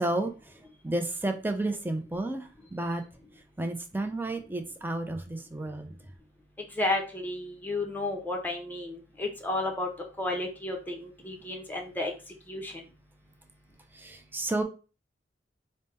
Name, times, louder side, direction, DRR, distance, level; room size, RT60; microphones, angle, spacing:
voice 1, 0.0-3.0 3.6-6.0 13.9-14.6, right 2 dB, 10° right, 5 dB, 0.5 m, -32 dB
voice 2, 6.8-9.9 10.2-12.1 12.5-12.7, left 2 dB, 10° left, 1 dB, 0.8 m, -32 dB
3.6 x 2.1 x 4.2 m, 0.33 s
head